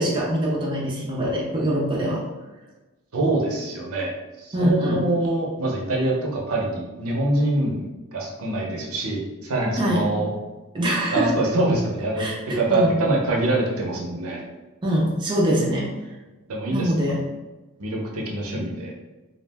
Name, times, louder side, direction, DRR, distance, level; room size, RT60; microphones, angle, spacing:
voice 1, 0.0-2.2 4.5-5.0 9.8-10.0 10.7-11.3 12.2-12.9 14.8-15.9 16.7-17.2, equal, 20° right, -4 dB, 0.4 m, -23 dB
voice 2, 3.1-4.1 4.4-7.8 8.1-10.3 11.1-12.3 12.6-14.4 16.5-16.9 17.8-18.9, right 2 dB, 70° right, -1 dB, 0.6 m, -24 dB
2.3 x 2.1 x 3.3 m, 1.1 s
head